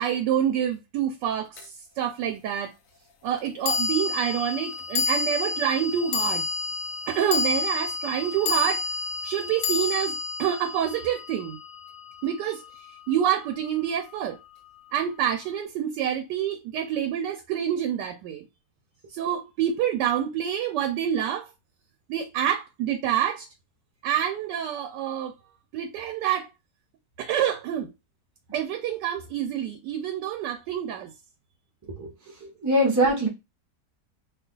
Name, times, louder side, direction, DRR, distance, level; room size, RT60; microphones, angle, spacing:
voice 1, 0.0-1.7 2.0-2.7 3.2-6.5 7.1-8.8 9.2-11.6 12.2-12.6 13.1-14.4 14.9-18.4 19.1-21.5 22.1-23.5 24.0-25.3 25.7-26.5 27.2-27.9 28.5-31.1, right 10 dB, 80° right, 1.2 m, -27 dB
sound 1, 1.6-1.7 3.6-12.1, left 4 dB, 65° left, 0.9 m, -29 dB
voice 2, 32.4-33.3, right 1 dB, 20° right, 0.5 m, -22 dB
2.7 x 2.4 x 3.7 m
omnidirectional pair, 1.9 m